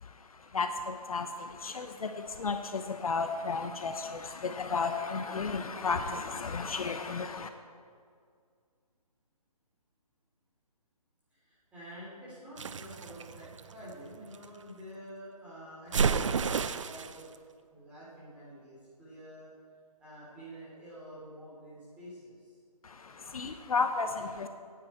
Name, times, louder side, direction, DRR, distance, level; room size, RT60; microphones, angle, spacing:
voice 1, 0.0-7.5 22.8-24.5, left 4 dB, 60° left, 7 dB, 0.9 m, -33 dB
voice 2, 11.3-17.3 17.7-19.5 20.0-22.5, equal, 5° right, -9 dB, 3.2 m, -48 dB
sound 1, 12.6-14.5 15.9-17.2, right 6 dB, 50° right, 0.5 m, -31 dB
16.5 x 9.4 x 4.4 m, 2.1 s
hypercardioid pair, 165°, 20 cm